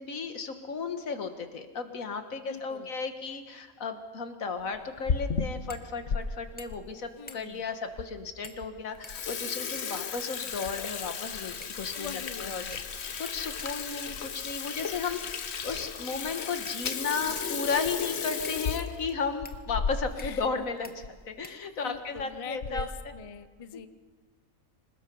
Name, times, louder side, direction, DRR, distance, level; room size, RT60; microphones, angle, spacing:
voice 1, 0.0-12.6 13.2-22.9, left 5 dB, 70° left, 7 dB, 1.9 m, -34 dB
voice 2, 2.5-2.9 7.2-7.6 11.9-12.8 20.2-20.6 21.8-23.9, left 6 dB, 35° left, 12 dB, 0.5 m, -43 dB
Water tap faucet / Sink (filling or washing), 4.8-6.2 6.7-6.8 7.5-7.6 8.0-8.1 8.5-8.7 8.9-20.4 20.7-20.8 21.0-21.2 21.9-22.2 22.6-23.0, left 6 dB, 50° left, 1.2 m, -34 dB
sound 1, 5.7-5.9 6.2-6.3 6.6-6.9 7.3-7.7 8.4-8.7 9.0-10.0 10.6-11.2 11.6-11.9 12.7-13.1 13.6-13.7 14.8-15.1 15.9-16.0 16.7-17.6 18.4-18.6 19.4-19.6 20.2-20.5 20.8-21.0 21.4-22.0, left 1 dB, 10° left, 0.9 m, -50 dB
26.0 x 19.5 x 5.4 m, 1.4 s
omnidirectional pair, 1.5 m